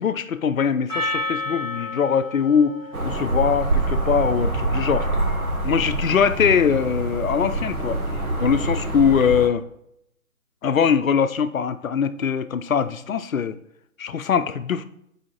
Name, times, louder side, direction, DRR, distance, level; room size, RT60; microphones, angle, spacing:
voice 1, 0.0-2.8 3.0-5.1 5.6-8.0 8.4-9.6 10.6-13.6 14.0-14.8, left 7 dB, 70° left, 12 dB, 0.6 m, -22 dB
Percussion, 0.9-5.5, left 2 dB, 5° right, 0.7 m, -33 dB
sound 1, 2.9-9.5, right 2 dB, 80° right, 1.4 m, -25 dB
8.5 x 4.9 x 3.0 m, 0.77 s
figure-of-eight pair, 150°, 43 cm